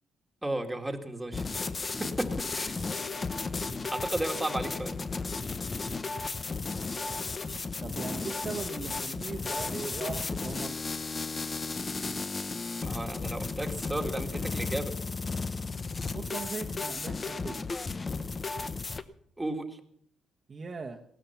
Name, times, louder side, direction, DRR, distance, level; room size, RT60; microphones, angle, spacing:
voice 1, 0.4-1.5 1.8-2.8 3.9-5.0 12.8-14.9 19.4-19.8, right 1 dB, 10° right, 4 dB, 2.0 m, -34 dB
sound 1, 1.3-19.0, left 4 dB, 30° left, 0.8 m, -34 dB
voice 2, 7.8-10.8 16.1-17.6 20.5-21.0, right 4 dB, 40° right, 1 dB, 1.2 m, -39 dB
16.5 x 12.5 x 5.8 m, 0.67 s
cardioid pair, 90°, 0 cm